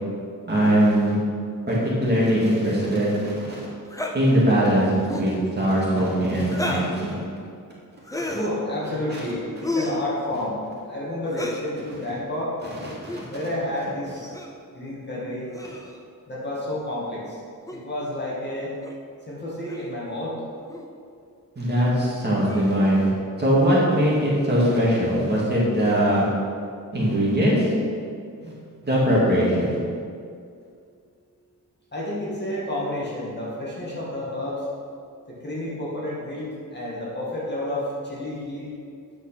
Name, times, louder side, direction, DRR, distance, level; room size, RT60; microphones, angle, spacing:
voice 1, 0.5-1.1 1.7-3.6 4.1-7.1 13.1-13.3 21.6-23.1 23.4-26.3 26.9-27.6 28.4-28.5 28.8-29.8, equal, 30° right, -7 dB, 2.5 m, -21 dB
sound 1, 3.9-4.2 5.0-5.4 6.5-7.0 8.0-8.5 9.6-10.0 11.3-11.7 13.0-13.3 14.3-14.6 15.5-16.0 17.7-17.8 18.8-19.0 19.7-19.9 20.7-20.9 22.4-22.8, left 1 dB, 10° left, 0.7 m, -31 dB
voice 2, 8.3-12.5 13.3-14.3 14.7-15.5 16.3-17.4 17.7-18.7 19.3-20.3 31.9-34.6 35.3-38.7, left 1 dB, 30° left, -6 dB, 2.1 m, -30 dB
9.1 x 6.0 x 6.0 m, 2.3 s
wide cardioid pair, 160°, 34 cm